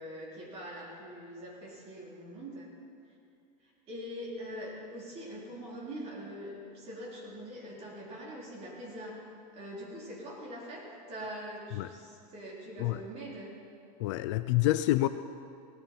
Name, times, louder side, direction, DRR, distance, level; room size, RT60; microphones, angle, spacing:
voice 1, 0.0-2.7 3.6-9.2 9.5-13.5, equal, 30° right, -4 dB, 3.7 m, -43 dB
voice 2, 14.0-15.1, left 16 dB, 50° left, 12 dB, 0.4 m, -27 dB
18.0 x 12.5 x 4.5 m, 2.5 s
supercardioid pair, 165°, 20 cm